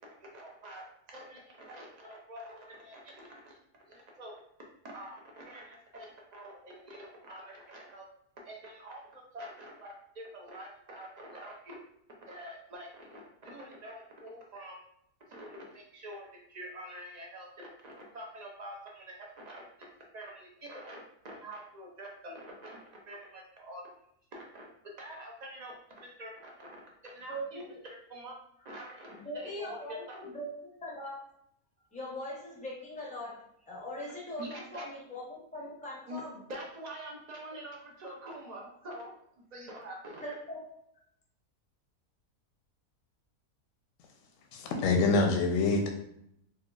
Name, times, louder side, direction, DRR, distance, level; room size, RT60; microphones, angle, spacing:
voice 1, 0.2-4.4 4.8-8.0 8.4-11.8 12.3-14.8 15.3-19.6 20.1-22.8 23.1-23.8 24.3-24.7 25.0-26.7 27.0-28.4 28.6-30.2 34.4-34.9 36.1-39.1 39.5-40.3, right 1 dB, 60° right, -2 dB, 0.4 m, -46 dB
voice 2, 27.3-27.8 29.1-31.2 31.9-36.3 40.2-40.7, equal, 10° left, -4 dB, 0.4 m, -41 dB
voice 3, 44.5-45.9, left 3 dB, 70° left, 2 dB, 0.9 m, -26 dB
4.4 x 2.3 x 2.4 m, 0.73 s
omnidirectional pair, 1.6 m